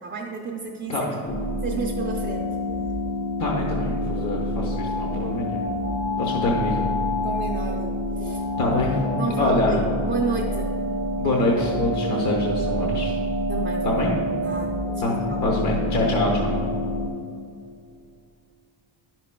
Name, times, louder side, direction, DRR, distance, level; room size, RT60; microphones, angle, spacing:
voice 1, 0.0-1.1 1.6-2.6 7.2-8.4 9.2-10.8 13.5-14.0 14.4-15.5, right 4 dB, 30° right, -1 dB, 0.5 m, -31 dB
sound 1, 1.3-17.1, left 1 dB, 25° left, 0.6 m, -27 dB
voice 2, 3.4-5.6 6.2-6.8 8.6-9.0 9.4-9.7 11.2-13.1 13.8-14.1 15.0-16.6, left 1 dB, 50° left, -1 dB, 1.0 m, -25 dB
10.0 x 5.8 x 2.2 m, 2.4 s
cardioid pair, 150°, 37 cm